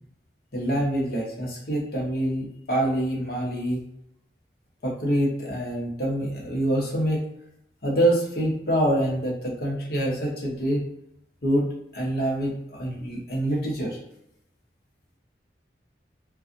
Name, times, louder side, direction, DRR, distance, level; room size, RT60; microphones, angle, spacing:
voice 1, 0.5-3.8 4.8-7.2 7.8-10.8 11.4-11.7 11.9-14.0, right 1 dB, 55° left, -3 dB, 0.8 m, -25 dB
2.5 x 2.4 x 2.5 m, 0.79 s
head